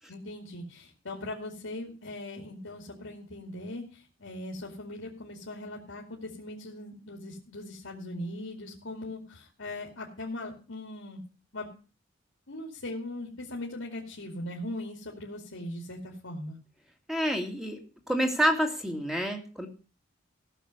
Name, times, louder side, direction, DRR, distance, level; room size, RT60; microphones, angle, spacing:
voice 1, 0.1-11.2 11.5-11.7 12.5-16.6, left 1 dB, 85° left, -1 dB, 2.5 m, -40 dB
voice 2, 17.1-17.8 18.1-19.7, equal, ahead, 3 dB, 2.2 m, -28 dB
15.5 x 6.7 x 6.7 m, 0.35 s
head